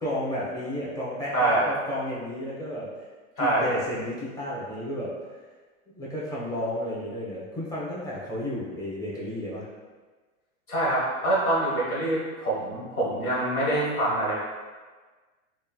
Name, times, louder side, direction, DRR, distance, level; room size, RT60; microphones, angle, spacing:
voice 1, 0.0-2.9 3.4-5.1 5.9-9.6, left 1 dB, 10° left, -7 dB, 0.7 m, -32 dB
voice 2, 1.3-1.7 3.4-3.7 10.7-14.3, right 1 dB, 90° left, -6 dB, 1.3 m, -25 dB
3.1 x 2.2 x 2.3 m, 1.4 s
hypercardioid pair, 105°, 42 cm